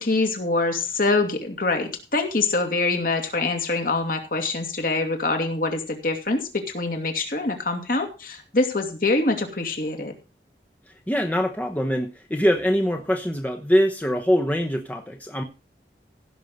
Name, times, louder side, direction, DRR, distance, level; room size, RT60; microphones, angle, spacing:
voice 1, 0.0-10.1, left 3 dB, 50° left, 5 dB, 2.4 m, -24 dB
voice 2, 11.1-15.4, equal, 10° left, 5 dB, 0.9 m, -23 dB
16.0 x 6.4 x 5.3 m, 0.31 s
head